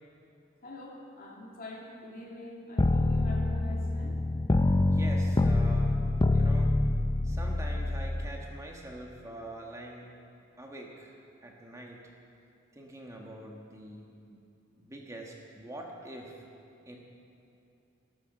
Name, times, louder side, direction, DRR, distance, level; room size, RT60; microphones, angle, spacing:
voice 1, 0.6-4.2, left 1 dB, 50° left, -2 dB, 2.6 m, -45 dB
sound 1, 2.8-8.3, left 2 dB, 20° left, 0.4 m, -26 dB
voice 2, 4.8-6.0 6.3-6.8 7.2-10.1 10.6-11.1 11.4-12.0 12.7-14.4 14.8-16.3 16.9-17.0, right 1 dB, 15° right, 0 dB, 1.4 m, -44 dB
13.0 x 13.0 x 6.6 m, 2.7 s
head